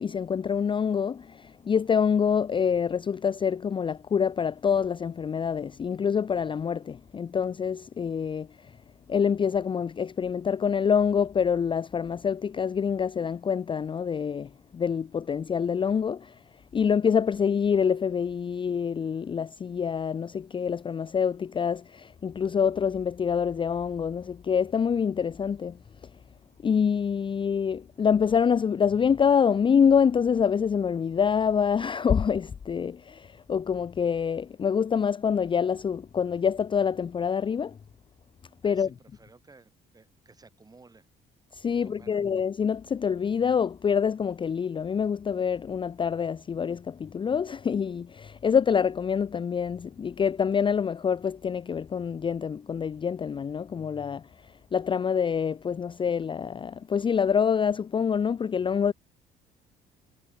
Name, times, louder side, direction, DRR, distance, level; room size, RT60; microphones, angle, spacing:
voice 1, 0.0-8.7 9.1-16.3 16.7-25.8 26.6-37.8 38.6-38.9 41.5-54.2 54.7-58.9, left 7 dB, 30° left, 0.5 m, -26 dB
voice 2, 38.6-41.1 41.7-42.2, right 3 dB, 20° right, 6.0 m, -56 dB
supercardioid pair, 90°, 18 cm